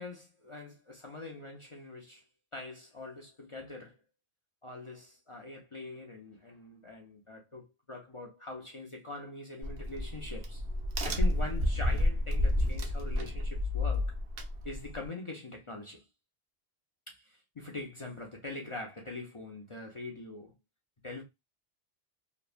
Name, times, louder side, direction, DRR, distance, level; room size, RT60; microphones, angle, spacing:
voice 1, 0.0-2.2 2.5-3.9 4.6-10.6 11.0-14.2 14.6-16.1 17.1-20.5 21.0-21.2, left 2 dB, 40° left, 0.4 m, -43 dB
Crack, 9.6-15.1, left 1 dB, 65° right, 0.8 m, -30 dB
2.9 x 2.1 x 2.4 m
omnidirectional pair, 1.1 m